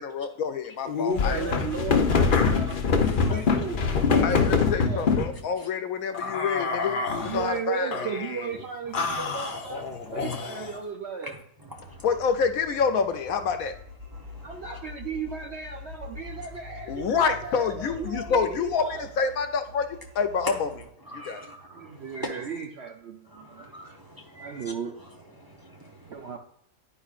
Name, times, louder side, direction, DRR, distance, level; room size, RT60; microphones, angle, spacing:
voice 1, 0.0-1.4 2.0-2.2 4.2-7.9 12.0-13.8 16.9-20.7 21.1-21.4, left 6 dB, 70° left, 8 dB, 1.0 m, -27 dB
sound 1, 0.9-5.3 6.1-7.4 7.9-8.5 8.9-10.8, left 5 dB, 50° left, 0.7 m, -25 dB
voice 2, 1.1-3.9 4.6-5.1 7.2-9.9 10.1-11.4 14.4-19.0 21.7-23.7 24.3-25.0 26.1-26.4, right 6 dB, 60° right, 4 dB, 0.7 m, -35 dB
voice 3, 9.0-9.4 9.8-10.7 11.6-12.0 14.2-14.9 21.1-22.5 23.3-24.6 25.3-26.4, equal, 20° right, 0 dB, 0.7 m, -45 dB
sound 2, 11.8-20.8, left 2 dB, 45° right, 3.2 m, -44 dB
10.0 x 4.8 x 2.4 m, 0.74 s
omnidirectional pair, 1.6 m